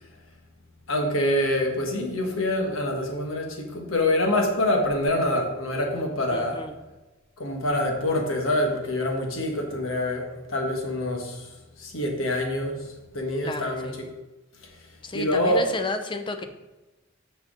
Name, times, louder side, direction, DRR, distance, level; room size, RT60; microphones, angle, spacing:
voice 1, 0.9-6.6 7.4-11.5 11.8-12.9 13.1-13.9 15.1-15.6, left 1 dB, 85° left, 2 dB, 1.5 m, -25 dB
voice 2, 6.3-6.8 13.4-13.9 15.0-16.4, left 2 dB, 25° left, 7 dB, 0.6 m, -32 dB
6.2 x 6.1 x 5.2 m, 1.1 s
head